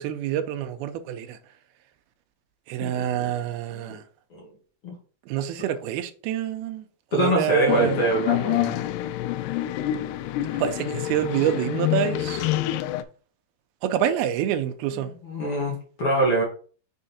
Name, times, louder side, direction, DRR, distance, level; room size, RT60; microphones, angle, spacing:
voice 1, 0.0-1.4 2.7-4.0 5.3-6.8 7.1-8.0 10.5-12.5 13.8-15.1, right 10 dB, 80° right, 2.5 m, -27 dB
voice 2, 2.8-3.3 3.7-4.0 4.3-4.5 4.8-4.9 7.1-8.7 15.2-16.4, right 1 dB, 50° left, 1.8 m, -24 dB
sound 1, 7.7-13.0, left 14 dB, 90° left, 2.6 m, -27 dB
6.4 x 3.7 x 4.2 m
omnidirectional pair, 4.6 m